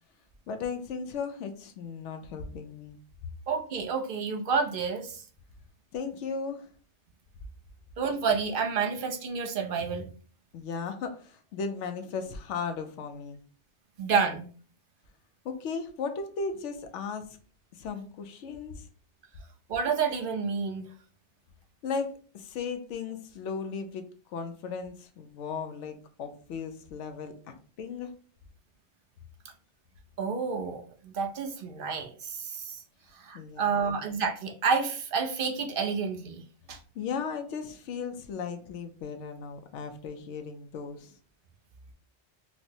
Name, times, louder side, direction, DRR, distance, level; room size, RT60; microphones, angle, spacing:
voice 1, 0.5-3.0 5.9-6.7 10.5-13.4 15.4-17.3 17.7-18.9 21.8-24.0 24.3-28.1 33.3-34.0 36.9-41.1, left 5 dB, 90° left, 0.9 m, -36 dB
voice 2, 3.5-5.2 8.0-10.1 14.0-14.5 19.7-20.9 30.2-32.8 33.1-36.8, right 5 dB, 60° right, 0.7 m, -29 dB
4.4 x 2.0 x 2.7 m
omnidirectional pair, 1.2 m